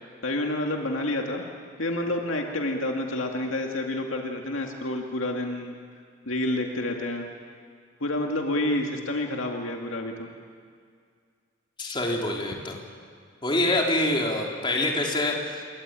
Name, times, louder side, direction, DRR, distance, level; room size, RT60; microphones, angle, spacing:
voice 1, 0.2-1.4 1.8-5.8 6.3-7.3 8.0-10.3, left 1 dB, 65° left, 2 dB, 2.3 m, -29 dB
voice 2, 11.8-12.8 13.4-15.6, left 1 dB, 25° left, -1 dB, 3.8 m, -26 dB
28.5 x 23.0 x 9.1 m, 2.1 s
head